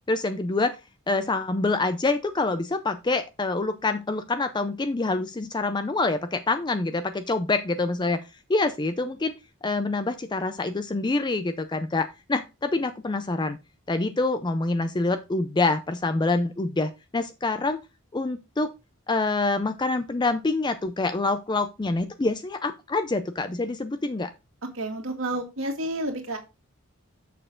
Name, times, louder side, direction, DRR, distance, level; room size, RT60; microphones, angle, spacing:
voice 1, 0.1-0.8 1.1-8.2 8.5-9.3 9.6-13.6 13.9-17.8 18.1-18.7 19.1-24.3, left 3 dB, 20° left, 10 dB, 0.4 m, -26 dB
voice 2, 24.6-26.4, right 1 dB, 65° right, 3 dB, 2.0 m, -30 dB
6.7 x 6.4 x 3.7 m, 0.27 s
head